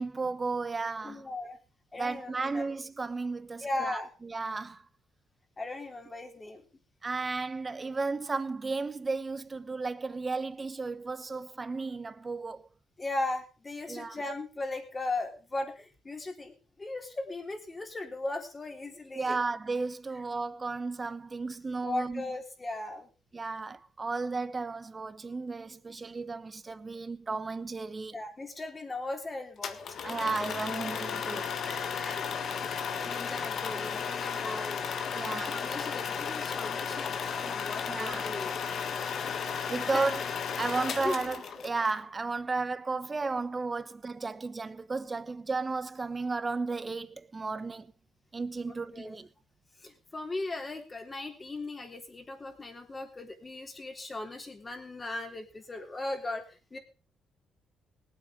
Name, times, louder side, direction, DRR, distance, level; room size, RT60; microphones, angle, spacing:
voice 1, 0.0-1.2 2.0-4.8 7.0-12.7 13.9-14.2 19.1-22.2 23.3-28.2 30.0-31.8 35.1-35.6 37.9-38.3 39.7-40.2 40.6-47.9 48.3-49.3, right 3 dB, 30° right, 1.1 m, -34 dB
voice 2, 1.0-1.6 1.9-2.6 3.6-4.1 5.6-6.6 13.0-19.4 21.8-23.1 24.5-24.6 28.1-29.8 31.6-32.6 33.1-38.6 39.5-40.1 41.0-41.1 48.7-49.2 49.8-56.8, left 2 dB, 25° left, 3.5 m, -38 dB
sound 1, 29.6-41.9, left 6 dB, 60° left, 1.6 m, -34 dB
19.0 x 8.8 x 5.1 m
cardioid pair, 90°, 0 cm